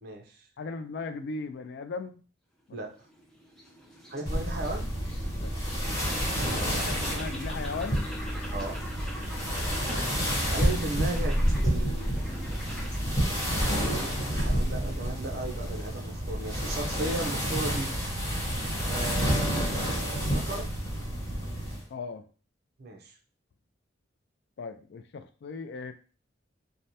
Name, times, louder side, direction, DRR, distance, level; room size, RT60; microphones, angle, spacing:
voice 1, 0.0-0.4 2.7-2.9 4.1-4.9 6.5-7.3 8.5-8.8 10.5-11.4 11.6-12.3 13.6-17.9 18.9-20.7 22.8-23.1, right 2 dB, 55° right, 2 dB, 0.6 m, -36 dB
voice 2, 0.6-2.2 2.7-2.8 5.4-5.5 6.7-8.1 9.6-9.9 21.9-22.3 24.6-25.9, left 4 dB, 60° left, 9 dB, 0.3 m, -37 dB
sound 1, 2.8-16.2, equal, ahead, 0.6 m, -44 dB
sound 2, 4.3-21.8, equal, 20° left, 1.2 m, -29 dB
3.2 x 2.1 x 2.7 m, 0.38 s
head